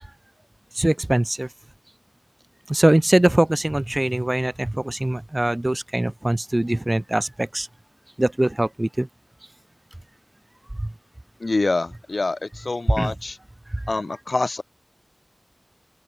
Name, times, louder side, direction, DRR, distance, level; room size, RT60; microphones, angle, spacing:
voice 1, 0.8-1.5 2.7-7.7 8.2-9.1 13.0-13.1, right 1 dB, 30° right, 2.2 m, -22 dB
voice 2, 11.4-13.4 13.9-14.6, left 3 dB, 75° left, 4.7 m, -25 dB
open air
wide cardioid pair, 55°, 0 cm